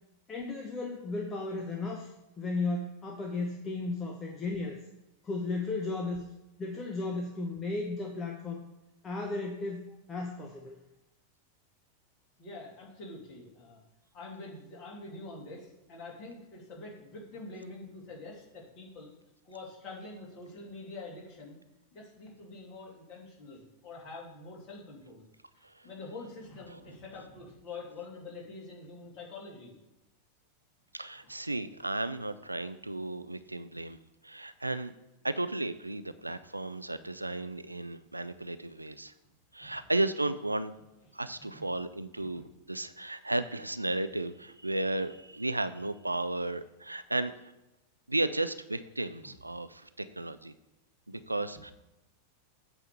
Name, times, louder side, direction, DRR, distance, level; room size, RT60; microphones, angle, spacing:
voice 1, 0.3-2.1 2.4-4.8 5.2-6.3 6.6-8.6 9.0-10.8, left 3 dB, 20° left, 2 dB, 0.9 m, -35 dB
voice 2, 12.4-13.8 14.1-19.1 19.4-21.6 21.9-25.2 25.8-29.8 39.6-39.8 41.2-41.7 42.2-42.5 49.2-49.3 51.1-51.2, left 3 dB, 40° left, -2 dB, 2.7 m, -46 dB
voice 3, 30.9-34.0 34.2-34.9 35.2-39.1 39.5-40.7 41.1-42.4 42.7-47.3 48.1-50.5 51.1-51.7, right 2 dB, 85° right, 12 dB, 0.4 m, -34 dB
8.5 x 3.5 x 6.6 m, 0.97 s
figure-of-eight pair, 90°, 0 cm